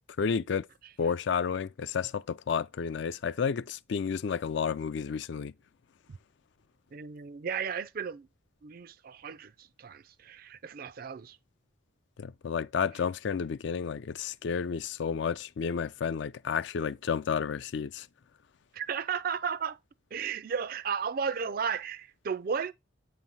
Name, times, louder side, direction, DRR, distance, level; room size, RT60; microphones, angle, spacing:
voice 1, 0.2-0.7 1.0-5.5 12.2-18.1, left 6 dB, 60° left, 0.4 m, -31 dB
voice 2, 6.9-8.3 8.6-11.4 18.7-19.8 20.1-22.7, right 6 dB, 45° right, 0.4 m, -34 dB
8.1 x 3.0 x 5.5 m
head